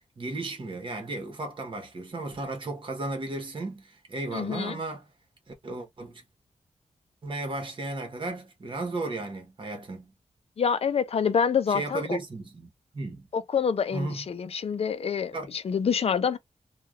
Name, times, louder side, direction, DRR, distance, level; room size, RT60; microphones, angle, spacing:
voice 1, 0.2-5.1 5.5-6.2 7.2-10.1 11.7-13.3 13.9-14.3 15.3-15.5, right 2 dB, 40° right, 1.0 m, -35 dB
voice 2, 4.3-4.8 10.6-12.2 13.3-16.4, left 7 dB, 55° left, 0.4 m, -27 dB
3.2 x 2.3 x 2.3 m
wide cardioid pair, 145°, 13 cm